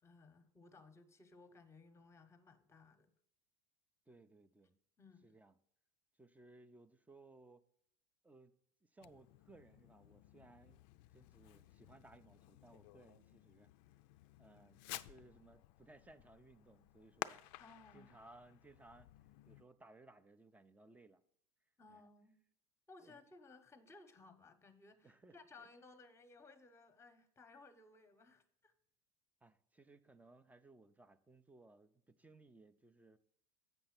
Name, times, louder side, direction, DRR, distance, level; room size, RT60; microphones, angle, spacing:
voice 1, 0.0-3.1 5.0-5.4 17.6-18.1 21.8-22.4 22.9-28.7, left 3 dB, 15° left, 1.0 m, -61 dB
voice 2, 4.1-4.8 5.2-5.5 6.2-7.6 8.2-8.5 8.9-10.8 11.1-13.7 14.4-17.4 17.9-19.1 19.5-21.2 21.9-22.0 23.0-23.2 25.0-25.7 29.4-33.2, right 2 dB, 5° right, 0.5 m, -62 dB
Fireworks, 9.0-19.7, left 16 dB, 55° left, 0.4 m, -54 dB
8.0 x 5.3 x 5.9 m
hypercardioid pair, 105°, 20 cm